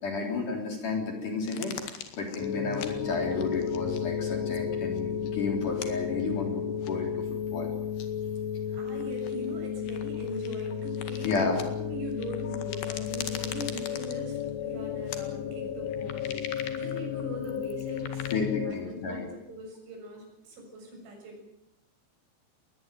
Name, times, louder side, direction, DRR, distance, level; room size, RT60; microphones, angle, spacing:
voice 1, 0.0-7.7 11.2-11.6 18.3-19.3, left 4 dB, 45° left, 3 dB, 4.6 m, -32 dB
sound 1, 1.5-4.0 4.3-4.6 5.0-5.3 5.7-5.9 6.8-7.2 8.0-8.1 8.9-11.7 12.1-14.5 15.1-15.2 15.7-18.4, left 9 dB, 65° left, 3.8 m, -42 dB
sound 2, 2.4-18.7, left 8 dB, 85° left, 3.5 m, -33 dB
voice 2, 8.7-18.3 18.6-21.4, right 1 dB, 75° right, 2 dB, 9.4 m, -41 dB
21.0 x 19.5 x 9.2 m, 0.82 s
omnidirectional pair, 5.5 m